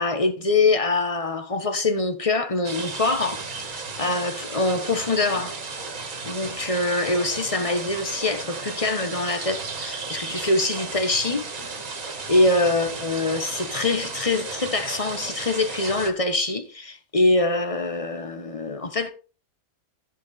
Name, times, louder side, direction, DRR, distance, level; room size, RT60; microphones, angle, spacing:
voice 1, 0.0-3.4 3.7-5.6 6.3-11.5 12.3-19.1, left 2 dB, 25° left, 1.1 m, -24 dB
sound 1, 2.6-16.1, right 4 dB, 65° right, 2.1 m, -34 dB
15.0 x 5.6 x 4.1 m
omnidirectional pair, 1.5 m